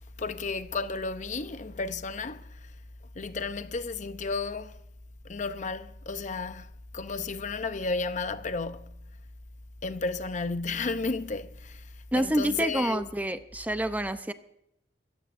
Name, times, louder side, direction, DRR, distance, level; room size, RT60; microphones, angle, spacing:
voice 1, 0.2-2.7 3.1-4.8 5.2-9.0 9.8-13.0, left 4 dB, 45° left, 0.7 m, -33 dB
voice 2, 12.1-14.3, right 1 dB, 10° right, 0.6 m, -28 dB
24.5 x 14.5 x 2.6 m
head